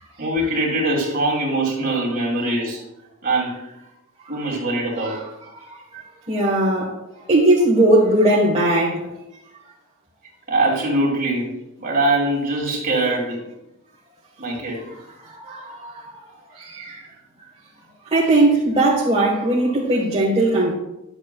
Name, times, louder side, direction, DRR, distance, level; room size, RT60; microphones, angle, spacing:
voice 1, 0.2-2.8 3.2-3.6 4.3-5.2 10.5-13.4 14.4-14.8, right 2 dB, 45° right, 2.5 m, -22 dB
voice 2, 5.7-6.0 6.3-6.9 7.3-9.1 15.3-16.1 16.6-17.0 18.1-20.7, right 1 dB, 25° right, 1.2 m, -18 dB
10.5 x 7.3 x 2.2 m
head